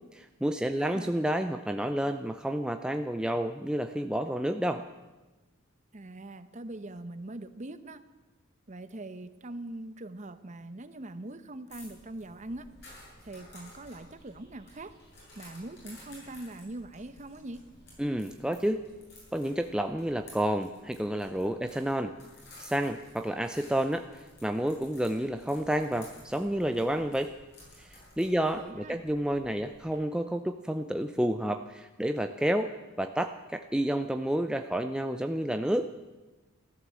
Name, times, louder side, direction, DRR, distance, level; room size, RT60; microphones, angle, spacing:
voice 1, 0.1-4.8 18.0-18.8 19.3-22.1 22.6-27.3 27.8-27.9 28.2-35.9, right 1 dB, 5° right, 7 dB, 0.4 m, -30 dB
voice 2, 0.8-1.1 5.9-8.0 8.7-12.7 13.2-14.9 15.3-17.6 28.4-29.0, right 2 dB, 35° right, 12 dB, 0.8 m, -42 dB
sound 1, 11.7-29.9, left 1 dB, 50° left, 7.6 m, -54 dB
14.5 x 13.0 x 7.6 m, 1.2 s
head